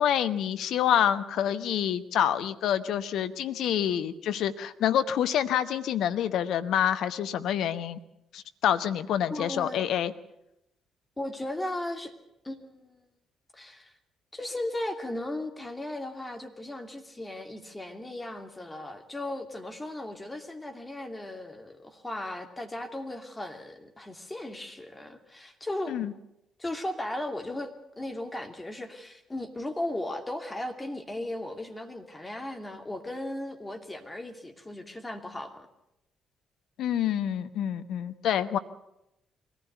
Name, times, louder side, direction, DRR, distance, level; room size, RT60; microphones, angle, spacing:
voice 1, 0.0-8.0 8.3-10.1 25.9-26.1 36.8-38.6, left 10 dB, 60° left, 12 dB, 1.0 m, -27 dB
voice 2, 9.3-9.8 11.2-12.1 12.4-13.1 13.5-13.9 14.3-26.0 26.6-35.7, left 1 dB, 15° left, 4 dB, 2.7 m, -36 dB
23.0 x 15.5 x 8.2 m, 0.87 s
figure-of-eight pair, 45°, 0 cm